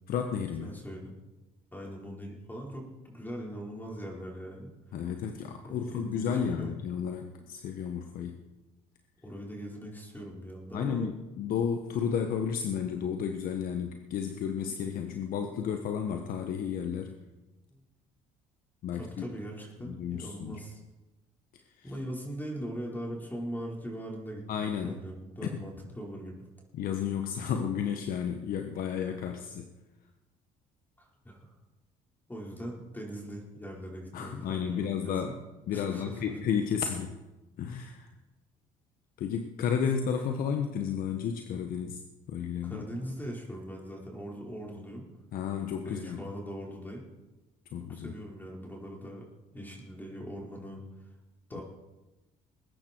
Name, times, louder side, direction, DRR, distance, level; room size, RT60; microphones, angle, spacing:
voice 1, 0.1-0.7 4.9-8.4 10.7-17.2 18.8-19.3 19.8-20.6 21.8-21.9 24.5-25.0 25.4-25.6 26.7-29.7 34.1-35.4 35.7-37.1 37.6-38.1 39.2-42.0 42.3-42.8 45.3-46.2 47.7-48.1 49.6-49.7 51.5-51.6, left 7 dB, 65° left, 5 dB, 1.3 m, -32 dB
voice 2, 0.6-1.1 1.7-4.7 5.6-6.3 6.6-6.7 9.2-11.1 17.7-17.8 18.9-20.8 21.8-26.3 31.0-31.5 32.3-35.4 35.7-36.3 42.6-45.1 45.8-47.0 47.9-49.2 49.5-50.8 51.5-51.6, equal, 10° left, -2 dB, 4.9 m, -41 dB
21.0 x 10.0 x 4.6 m, 1.1 s
supercardioid pair, 70°, 16 cm